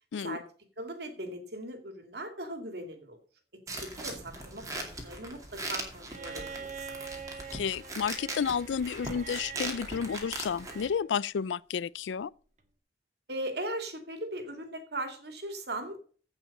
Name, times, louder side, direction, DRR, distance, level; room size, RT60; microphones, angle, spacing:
voice 1, 0.8-3.2 3.8-7.0 13.3-16.0, right 1 dB, 65° right, 2.5 m, -39 dB
sound 1, 3.7-10.9, right 2 dB, 20° right, 2.5 m, -40 dB
Bowed string instrument, 6.1-11.1 12.6-12.7, right 6 dB, 40° right, 1.5 m, -45 dB
voice 2, 7.5-12.3, left 7 dB, 85° left, 0.4 m, -31 dB
15.5 x 5.7 x 5.4 m
head